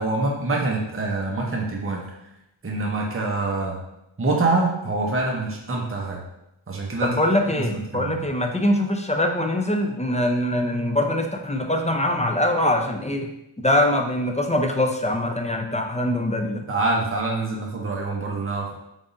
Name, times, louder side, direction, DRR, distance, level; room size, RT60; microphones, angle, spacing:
voice 1, 0.0-2.0 2.6-3.8 4.2-6.2 6.7-7.1 7.5-8.2 16.7-18.7, right 2 dB, 25° right, -1 dB, 0.7 m, -25 dB
voice 2, 7.0-13.3 13.6-16.6, left 1 dB, 15° left, 3 dB, 0.4 m, -23 dB
3.9 x 3.5 x 2.5 m, 0.85 s
wide cardioid pair, 45°, 50 cm